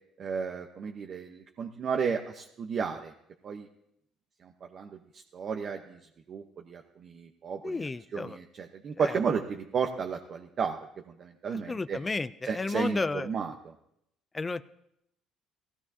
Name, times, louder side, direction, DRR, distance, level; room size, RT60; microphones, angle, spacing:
voice 1, 0.2-3.1 3.4-3.7 4.4-6.0 6.3-10.8 11.1-12.0 12.4-13.7, right 6 dB, 40° right, 3 dB, 0.9 m, -33 dB
voice 2, 7.6-8.4 9.0-9.2 11.7-13.3 14.3-14.6, left 3 dB, 20° left, 14 dB, 0.4 m, -32 dB
17.5 x 15.5 x 2.8 m, 0.76 s
cardioid pair, 130°, 0 cm